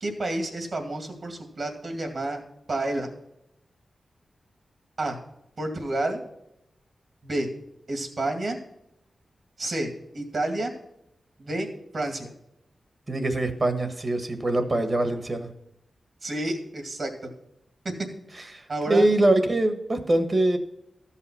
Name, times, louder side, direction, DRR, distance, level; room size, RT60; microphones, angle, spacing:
voice 1, 0.0-2.4 2.7-3.1 5.0-5.2 5.6-6.2 7.2-7.5 7.9-8.6 9.6-10.7 11.4-11.7 11.9-12.3 16.2-17.3 18.7-19.1, right 2 dB, 60° right, 5 dB, 2.2 m, -29 dB
voice 2, 13.1-15.5 18.5-20.6, right 1 dB, 40° right, 8 dB, 1.4 m, -23 dB
13.5 x 5.7 x 5.7 m, 0.82 s
cardioid pair, 70°, 0 cm